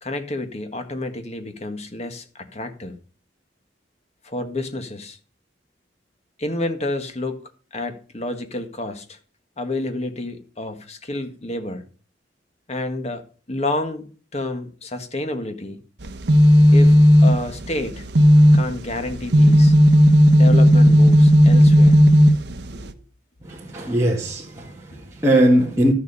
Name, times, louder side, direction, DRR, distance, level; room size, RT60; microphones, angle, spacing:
voice 1, 0.0-3.0 4.2-5.2 6.4-7.4 7.7-9.2 9.6-11.8 12.7-15.8 16.7-18.1 18.5-19.7 20.4-22.0 22.7-22.9 24.9-25.0, left 2 dB, 35° left, 1.7 m, -29 dB
sound 1, 16.0-22.9, equal, 65° right, 1.1 m, -13 dB
voice 2, 23.4-25.9, right 1 dB, 15° right, 2.0 m, -20 dB
13.0 x 7.0 x 5.4 m
head